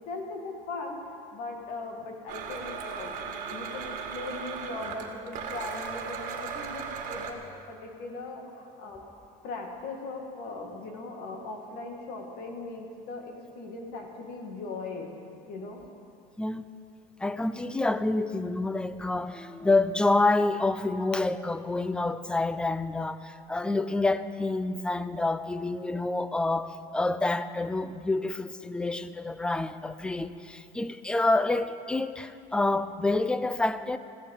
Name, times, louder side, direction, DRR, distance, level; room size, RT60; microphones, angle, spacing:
voice 1, 0.0-7.4 7.7-9.0 9.4-15.1 15.5-15.8, left 3 dB, 70° left, 2.3 m, -39 dB
Domestic sounds home sounds, 2.3-7.3, right 6 dB, 55° right, 1.9 m, -37 dB
voice 2, 17.2-34.0, left 2 dB, 5° left, 0.5 m, -28 dB
15.0 x 12.0 x 7.3 m
cardioid pair, 150°, 16 cm